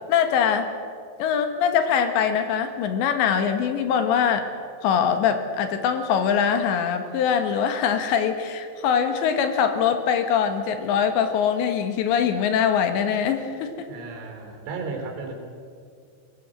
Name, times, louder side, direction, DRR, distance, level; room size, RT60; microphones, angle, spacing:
voice 1, 0.1-0.7 1.2-4.5 4.8-13.9, left 7 dB, 75° left, 8 dB, 3.5 m, -23 dB
voice 2, 13.9-15.3, right 4 dB, 85° right, 3 dB, 6.0 m, -34 dB
23.0 x 19.0 x 7.8 m, 2.3 s
omnidirectional pair, 5.5 m